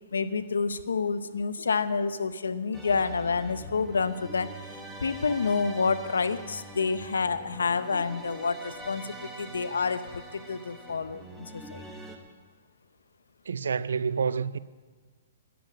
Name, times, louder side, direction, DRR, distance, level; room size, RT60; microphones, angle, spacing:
voice 1, 0.1-11.8, left 5 dB, 90° left, 0.7 m, -29 dB
sound 1, 2.7-12.2, right 2 dB, 5° right, 1.4 m, -44 dB
voice 2, 13.5-14.6, right 6 dB, 85° right, 0.4 m, -28 dB
10.5 x 7.7 x 9.0 m
hypercardioid pair, 140°, 0 cm